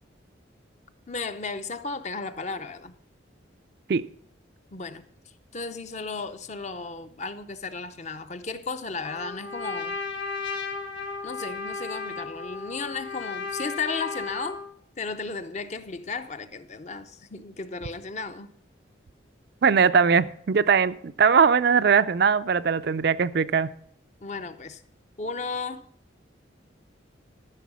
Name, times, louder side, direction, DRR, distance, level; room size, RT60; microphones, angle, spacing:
voice 1, 1.1-3.0 4.7-5.1 5.5-10.0 11.2-14.6 15.0-18.5 24.2-24.8 25.2-25.8, left 4 dB, 35° left, 0.6 m, -34 dB
Trumpet, 9.0-14.7, left 4 dB, 70° left, 2.3 m, -34 dB
voice 2, 19.6-23.7, right 6 dB, 55° right, 0.4 m, -20 dB
13.5 x 6.4 x 6.1 m
head